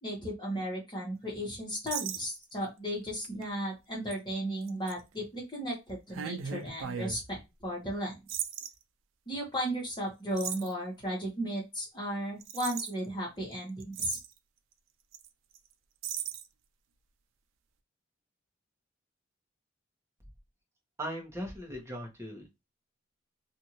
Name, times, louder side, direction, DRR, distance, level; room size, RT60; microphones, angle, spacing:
voice 1, 0.0-8.2 9.3-14.2, equal, 25° left, -4 dB, 1.2 m, -35 dB
sound 1, 1.9-2.7 3.2-3.4 4.1-4.2 4.7-4.9 6.1-7.2 8.3-8.7 10.4-10.7 12.4-12.9 13.5-13.6 13.8-14.3 15.1-15.3 15.6-15.7 16.0-16.4, right 8 dB, 85° right, 0.4 m, -37 dB
voice 2, 21.0-22.6, equal, 15° right, 1 dB, 0.9 m, -39 dB
2.6 x 2.5 x 2.9 m, 0.23 s
head